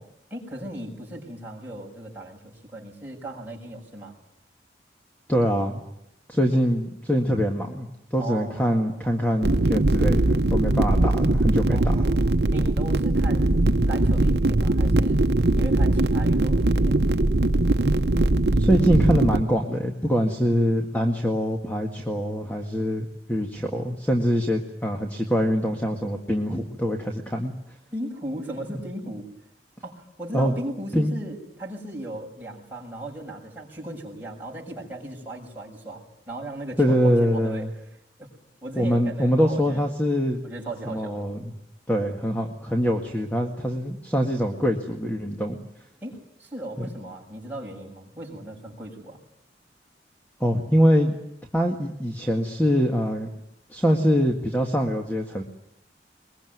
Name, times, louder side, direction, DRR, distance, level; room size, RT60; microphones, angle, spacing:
voice 1, 0.3-4.2 8.2-9.0 11.7-13.5 13.9-15.2 15.5-17.0 27.9-29.3 29.8-37.7 38.2-38.3 38.6-39.8 40.4-41.2 46.0-49.2, right 1 dB, 10° right, -3 dB, 6.8 m, -37 dB
voice 2, 5.3-5.8 6.3-11.9 18.6-27.5 30.3-30.6 30.9-31.1 36.8-37.7 38.8-40.4 40.9-41.5 41.9-45.6 46.8-46.9 50.4-51.2 51.5-53.3 53.7-55.4, equal, 10° left, 2 dB, 1.9 m, -24 dB
sound 1, 9.4-19.4, right 2 dB, 65° right, 0.9 m, -21 dB
22.5 x 22.0 x 9.5 m, 0.79 s
head